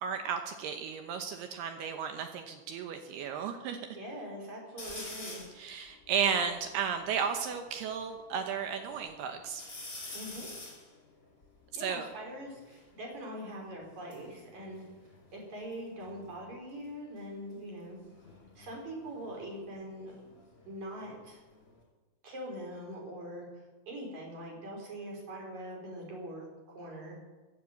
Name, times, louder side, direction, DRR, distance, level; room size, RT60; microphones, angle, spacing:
voice 1, 0.0-3.8 5.6-9.6 11.8-12.1, right 7 dB, 75° right, 6 dB, 2.7 m, -34 dB
voice 2, 3.9-5.4 10.1-10.5 11.8-14.8 15.3-18.0 18.6-20.1 20.7-21.4 22.2-23.5 23.9-27.2, right 1 dB, 40° right, -1 dB, 4.7 m, -42 dB
sound 1, 4.8-5.6 6.2-6.3 6.4-8.0 8.5-9.1 9.5-12.9 13.8-15.7 16.0-16.5 18.0-20.7 21.0-21.8, left 2 dB, 15° left, 4.3 m, -48 dB
15.5 x 9.8 x 7.7 m, 1.3 s
omnidirectional pair, 5.3 m